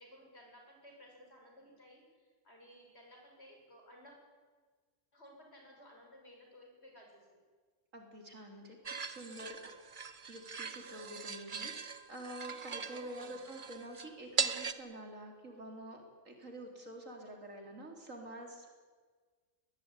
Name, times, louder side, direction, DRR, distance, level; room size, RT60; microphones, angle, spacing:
voice 1, 0.0-4.2 5.1-7.4 12.9-13.5, equal, 55° left, 1 dB, 7.0 m, -57 dB
voice 2, 7.9-9.6 9.9-18.7, right 1 dB, 80° right, 2 dB, 4.4 m, -48 dB
sound 1, 8.9-14.7, right 6 dB, 45° right, 1.1 m, -40 dB
22.0 x 20.0 x 10.0 m, 1.5 s
omnidirectional pair, 1.3 m